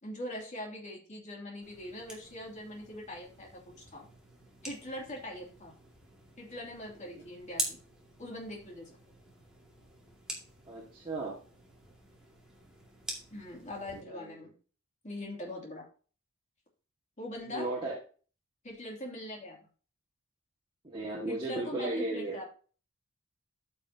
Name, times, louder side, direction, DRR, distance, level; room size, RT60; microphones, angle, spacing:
voice 1, 0.0-4.1 4.6-5.7 6.4-7.8 8.2-8.9 13.3-14.5 15.0-15.9 17.2-17.7 18.6-19.6 21.3-22.5, left 1 dB, 35° left, -1 dB, 2.8 m, -42 dB
sound 1, 1.6-14.0, right 1 dB, 5° right, 2.1 m, -45 dB
voice 2, 10.7-11.4 14.1-14.2 17.5-17.9 20.8-22.4, right 2 dB, 25° right, -5 dB, 1.8 m, -35 dB
13.5 x 5.5 x 2.9 m, 0.39 s
head